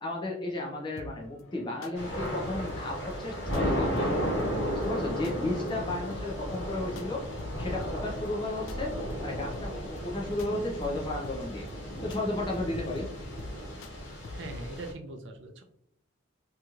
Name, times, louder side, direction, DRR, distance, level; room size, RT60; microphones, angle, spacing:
voice 1, 0.0-4.2 4.7-7.3 7.6-8.9 9.2-11.7 12.0-13.1, left 2 dB, 25° left, -1 dB, 0.5 m, -34 dB
sound 1, 1.0-14.7, left 2 dB, 85° left, 0.3 m, -46 dB
Thunder / Rain, 1.9-14.9, equal, 65° left, 0.9 m, -34 dB
voice 2, 14.3-15.6, right 2 dB, 65° right, 5 dB, 0.5 m, -41 dB
3.0 x 2.7 x 2.3 m, 0.71 s
head